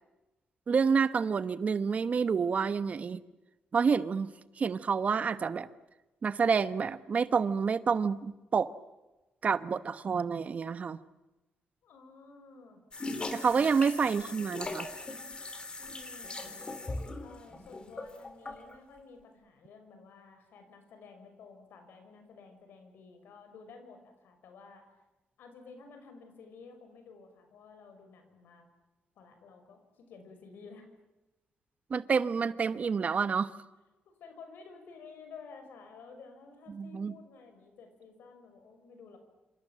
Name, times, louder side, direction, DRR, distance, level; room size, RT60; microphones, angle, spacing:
voice 1, 0.7-3.2 3.7-4.3 4.6-5.7 6.2-8.7 9.4-11.0 13.3-14.9 31.9-33.5 36.7-37.1, right 5 dB, 45° right, 1.1 m, -28 dB
voice 2, 11.8-12.8 13.6-13.8 15.8-16.5 17.2-24.8 25.4-28.7 29.2-30.9 34.0-39.2, left 4 dB, 90° left, 6.4 m, -52 dB
sound 1, 12.9-18.7, left 2 dB, 30° left, 3.5 m, -40 dB
27.5 x 27.0 x 7.6 m
cardioid pair, 115°, 3 cm